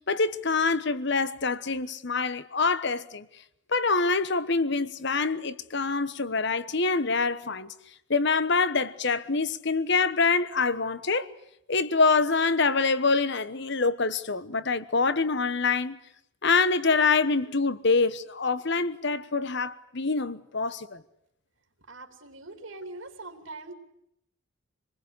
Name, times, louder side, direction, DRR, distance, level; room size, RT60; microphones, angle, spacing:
voice 1, 0.0-3.3 3.7-7.7 8.1-11.3 11.7-16.0 16.4-21.0, left 4 dB, 55° left, 1.2 m, -25 dB
voice 2, 21.9-23.7, right 2 dB, 70° right, 3.1 m, -42 dB
26.5 x 20.5 x 9.7 m
head